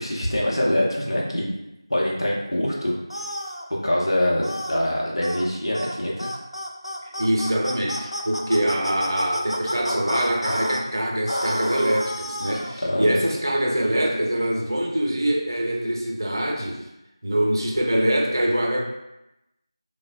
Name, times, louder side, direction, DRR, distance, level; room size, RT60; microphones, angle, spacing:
voice 1, 0.0-1.6 1.9-2.9 3.8-6.3 12.8-13.3, left 1 dB, 65° left, -4 dB, 0.8 m, -24 dB
sound 1, 3.1-3.6 4.4-4.8 5.2-5.5 5.7-5.9 6.2-10.8 11.3-12.7, equal, 90° left, 0.5 m, -30 dB
voice 2, 7.0-16.8 17.2-18.9, right 1 dB, 45° right, 0 dB, 0.5 m, -24 dB
3.2 x 2.1 x 2.5 m, 0.90 s
figure-of-eight pair, 170°, 3 cm